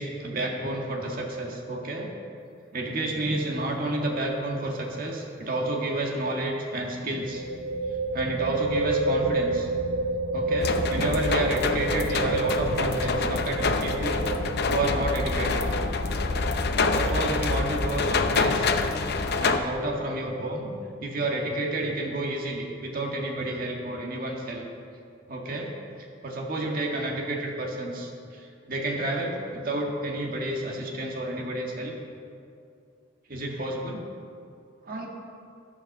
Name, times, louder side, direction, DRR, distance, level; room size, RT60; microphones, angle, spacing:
voice 1, 0.0-2.1 2.7-7.4 8.1-9.7 10.3-14.3 14.7-15.7 16.8-18.8 19.4-20.7 21.0-24.6 25.3-25.7 26.0-31.9 33.3-34.0 34.9-35.1, right 1 dB, 50° right, -1 dB, 1.7 m, -30 dB
sound 1, 4.1-4.4 4.6-4.7 7.2-18.6, right 2 dB, 90° right, 0.9 m, -31 dB
sound 2, 10.6-19.6, left 3 dB, 55° left, 0.6 m, -26 dB
11.5 x 7.3 x 6.6 m, 2.4 s
head